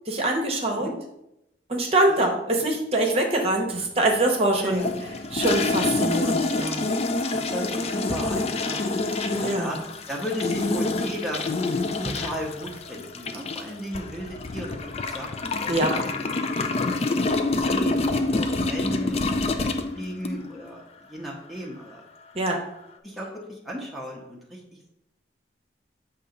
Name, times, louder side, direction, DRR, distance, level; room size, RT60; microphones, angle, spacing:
voice 1, 0.1-0.9 1.7-4.9 5.3-6.9 9.4-9.7 15.7-15.9 22.3-22.6, right 2 dB, 35° right, 1 dB, 0.8 m, -24 dB
sound 1, 4.7-20.6, left 3 dB, 35° left, 0.4 m, -27 dB
voice 2, 7.3-8.8 9.3-11.4 12.0-16.2 16.7-17.1 17.6-20.8 21.1-22.0 23.0-24.6, equal, ahead, -3 dB, 0.7 m, -35 dB
6.7 x 2.8 x 5.1 m, 0.85 s
head